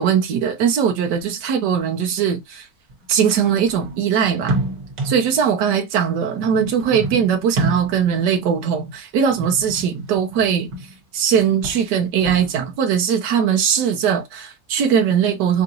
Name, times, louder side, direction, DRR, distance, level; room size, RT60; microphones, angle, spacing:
voice 1, 0.0-2.7 3.1-4.6 5.0-15.6, right 7 dB, 85° right, 1.3 m, -20 dB
sound 1, 1.2-1.3 1.8-1.9 2.9-5.4 6.4-8.2 9.3-11.0 11.2-12.7, right 2 dB, 65° right, 1.8 m, -29 dB
5.7 x 2.6 x 2.8 m
omnidirectional pair, 1.7 m